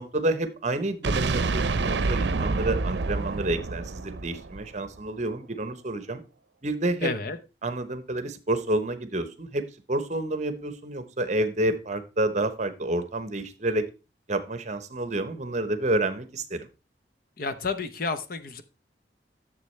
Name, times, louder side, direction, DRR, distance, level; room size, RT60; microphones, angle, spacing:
voice 1, 0.0-6.2 6.6-7.1 7.6-13.9 14.3-16.7, right 1 dB, 40° right, 11 dB, 0.9 m, -29 dB
sound 1, 1.0-5.0, right 3 dB, 80° right, 0.6 m, -27 dB
voice 2, 7.0-7.4 17.4-18.6, left 4 dB, 55° left, 10 dB, 0.8 m, -30 dB
11.5 x 7.0 x 3.2 m, 0.30 s
head